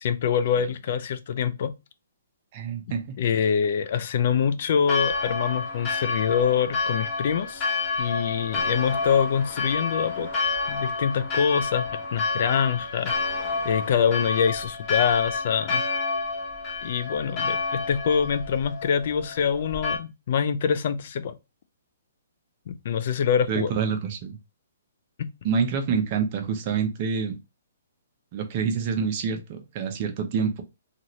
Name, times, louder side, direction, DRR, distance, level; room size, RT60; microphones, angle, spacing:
voice 1, 0.0-1.7 3.2-7.6 8.0-13.1 13.6-15.8 16.8-21.3 22.7-23.7 25.2-25.3, left 7 dB, 50° left, 0.4 m, -25 dB
voice 2, 2.5-3.2 23.5-24.4 25.4-27.4 28.3-30.6, right 6 dB, 35° right, 0.7 m, -27 dB
Church bell, 4.9-20.0, left 4 dB, 25° left, 1.2 m, -29 dB
2.7 x 2.5 x 3.0 m
hypercardioid pair, 150°, 0 cm